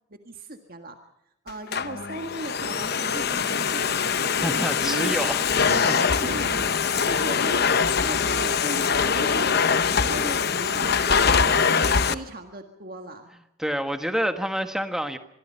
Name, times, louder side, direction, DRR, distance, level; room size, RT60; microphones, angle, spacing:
voice 1, 0.1-1.0 1.4-5.1 5.7-5.8 6.2-7.7 8.0-9.6 9.9-11.7 12.1-13.3, right 1 dB, 45° right, 5 dB, 1.7 m, -37 dB
Domestic sounds home sounds, 1.5-12.1, left 6 dB, 50° left, 0.9 m, -23 dB
voice 2, 4.4-6.2 13.6-15.2, equal, ahead, 7 dB, 1.4 m, -28 dB
26.0 x 22.0 x 5.6 m, 0.84 s
head